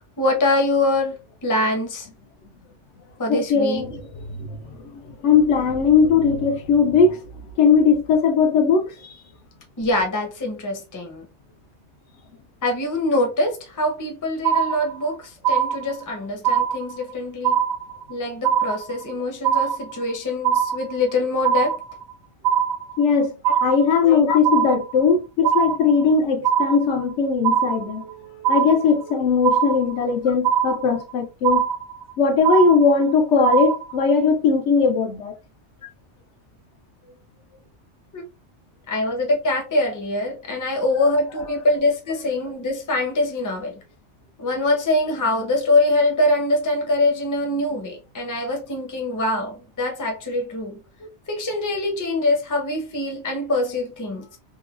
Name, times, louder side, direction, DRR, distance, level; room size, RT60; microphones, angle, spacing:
voice 1, 0.2-1.1 1.4-2.1 3.2-3.8 9.8-11.3 12.6-17.6 18.1-21.8 23.5-23.6 24.0-24.4 25.4-25.5 38.1-38.2 38.9-43.8 44.4-50.8 51.3-54.4, left 2 dB, 20° left, 0.5 m, -24 dB
voice 2, 3.3-4.0 4.3-4.6 5.2-7.2 7.6-8.9 23.0-23.3 23.6-31.7 32.2-35.3, left 5 dB, 85° left, 0.9 m, -19 dB
sound 1, 14.4-15.1 15.4-16.1 16.4-17.1 17.4-18.1 18.4-19.1 19.4-20.1 20.4-21.1 21.4-22.1 22.4-23.1 23.4-24.1 24.4-25.1 25.4-26.1 26.4-27.1 27.4-28.1 28.4-29.1 29.4-30.1 30.4-31.1 31.4-32.1 32.4-33.1 33.4-34.1, right 9 dB, 60° right, 0.9 m, -22 dB
3.1 x 2.2 x 2.3 m
omnidirectional pair, 1.2 m